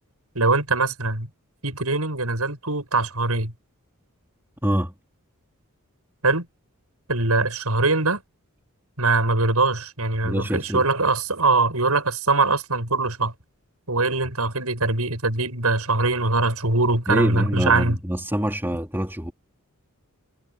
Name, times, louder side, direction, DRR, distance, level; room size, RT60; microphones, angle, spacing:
voice 1, 0.3-1.3 1.6-3.5 6.2-6.5 7.1-8.2 9.0-13.3 13.9-18.0, right 3 dB, 80° right, 7.6 m, -22 dB
voice 2, 4.6-4.9 10.2-10.8 17.1-19.3, equal, 10° right, 4.0 m, -25 dB
head